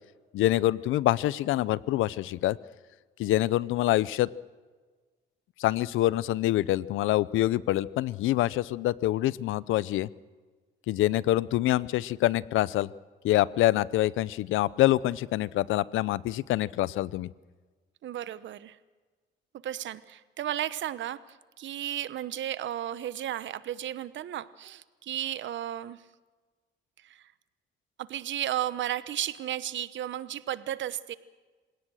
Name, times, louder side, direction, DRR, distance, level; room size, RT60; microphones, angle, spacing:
voice 1, 0.3-2.6 3.2-4.3 5.6-10.1 10.9-12.9 13.2-17.3, left 15 dB, 85° left, 20 dB, 0.6 m, -26 dB
voice 2, 18.0-18.8 19.6-26.0 27.0-27.3 28.0-31.1, right 11 dB, 70° right, 15 dB, 1.0 m, -34 dB
27.0 x 17.5 x 6.4 m, 1.4 s
cardioid pair, 90°, 20 cm